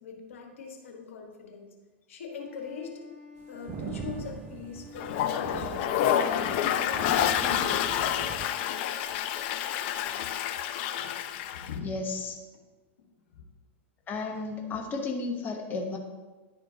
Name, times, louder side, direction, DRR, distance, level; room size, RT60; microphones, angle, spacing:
voice 1, 0.0-1.7 2.1-3.1 3.5-5.9 6.1-8.1 10.1-10.6 11.0-11.9 13.3-13.4, left 6 dB, 75° left, 2 dB, 1.3 m, -42 dB
Wind instrument woodwind instrument, 2.3-6.6, left 4 dB, ahead, 1.0 m, -50 dB
sound 1, 3.4-8.5, right 6 dB, 30° right, 0.5 m, -41 dB
Toilet flush, 5.0-11.7, left 10 dB, 55° left, 0.5 m, -28 dB
voice 2, 11.8-12.4 14.1-16.0, left 3 dB, 25° left, 1 dB, 0.9 m, -33 dB
10.5 x 4.4 x 2.7 m, 1.2 s
hypercardioid pair, 105°, 7 cm